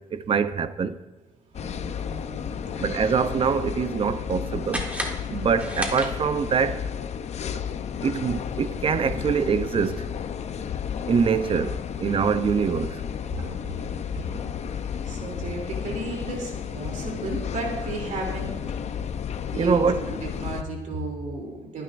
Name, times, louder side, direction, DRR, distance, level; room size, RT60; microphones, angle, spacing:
voice 1, 0.1-1.0 2.8-4.9 5.3-6.9 8.0-10.1 11.1-13.0 19.6-20.0, right 6 dB, 40° right, 0.7 m, -24 dB
sound 1, 1.5-20.6, left 8 dB, 50° left, 0.6 m, -32 dB
voice 2, 1.5-2.9 13.3-18.6 19.5-21.8, right 2 dB, 60° right, 3.0 m, -34 dB
sound 2, 4.7-6.6, equal, 10° right, 1.6 m, -33 dB
21.0 x 9.7 x 2.6 m
cardioid pair, 105°, 14 cm